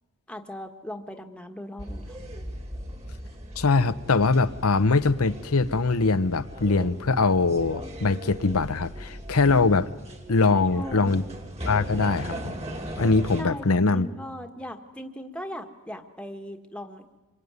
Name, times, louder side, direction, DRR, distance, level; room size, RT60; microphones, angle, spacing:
voice 1, 0.3-2.2 10.5-11.2 13.4-17.2, equal, 5° left, 5 dB, 1.6 m, -39 dB
sound 1, 1.8-13.4, equal, 30° right, 2.9 m, -38 dB
voice 2, 3.6-9.9 10.3-11.2 11.7-12.5 13.0-14.1, left 3 dB, 80° left, 10 dB, 0.9 m, -22 dB
26.5 x 23.0 x 9.6 m, 1.2 s
head